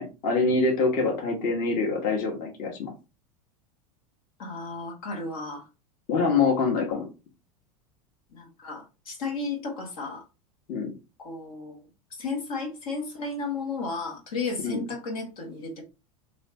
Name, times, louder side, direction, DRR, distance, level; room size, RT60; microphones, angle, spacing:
voice 1, 0.0-2.9 6.1-7.1 10.7-10.9 14.6-14.8, left 4 dB, 50° left, 1.2 m, -25 dB
voice 2, 4.4-5.6 8.3-10.2 11.2-11.8 12.2-15.8, left 3 dB, 75° left, 1.3 m, -33 dB
3.1 x 2.7 x 3.1 m
hypercardioid pair, 95°, 18 cm